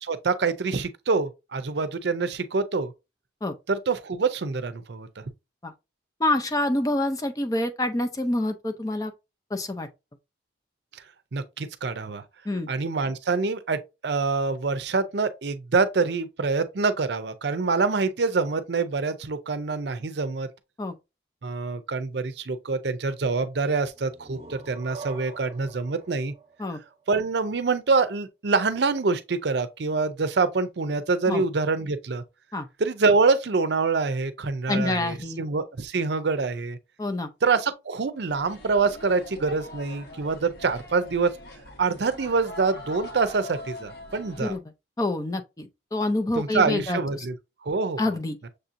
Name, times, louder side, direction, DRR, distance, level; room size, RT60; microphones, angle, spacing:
voice 1, 0.0-2.9 3.7-5.2 10.9-11.0 11.3-12.2 12.7-20.5 21.4-26.3 27.1-32.2 32.8-36.8 37.4-41.3 41.8-44.5 46.3-47.4 47.6-48.0, right 4 dB, 65° right, 0.5 m, -25 dB
voice 2, 6.2-9.1 9.5-9.9 12.5-12.7 20.8-21.0 26.6-26.8 31.3-31.4 32.5-32.7 34.7-35.4 37.0-37.3 44.4-44.6 45.0-47.3 48.0-48.4, left 2 dB, 20° left, 0.4 m, -27 dB
sound 1, 23.9-27.5, right 4 dB, 30° right, 0.8 m, -44 dB
sound 2, 38.3-44.6, left 1 dB, 55° left, 1.0 m, -42 dB
6.6 x 2.7 x 2.5 m
head